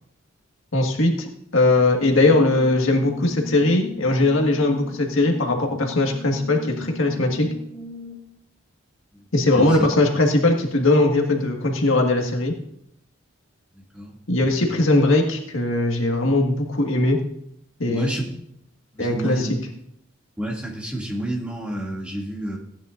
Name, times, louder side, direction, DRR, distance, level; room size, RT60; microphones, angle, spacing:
voice 1, 0.7-7.5 9.3-12.5 14.3-17.2 17.8-18.1 19.0-19.5, left 2 dB, 75° left, 2 dB, 1.7 m, -20 dB
Brass instrument, 2.0-8.4, left 4 dB, 10° left, 2.5 m, -39 dB
voice 2, 17.9-18.3 18.9-19.5 20.4-22.6, right 1 dB, 5° right, -3 dB, 2.3 m, -29 dB
16.0 x 10.0 x 2.6 m, 0.72 s
head